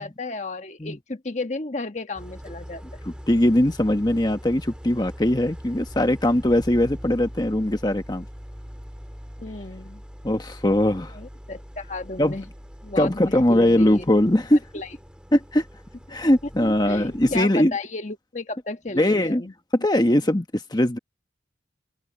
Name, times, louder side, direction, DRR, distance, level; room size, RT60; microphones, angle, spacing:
voice 1, 0.0-3.0 9.4-10.0 11.1-12.4 12.8-14.0 14.7-14.9 16.1-16.2 16.6-19.5, left 2 dB, 40° left, 1.3 m, -33 dB
Idling, 2.1-17.4, equal, 5° right, 3.5 m, -42 dB
voice 2, 3.0-8.2 10.2-11.1 12.2-12.4 13.0-14.6 15.3-15.6 16.1-17.7 18.9-19.5 19.8-21.0, left 1 dB, 25° left, 1.3 m, -21 dB
head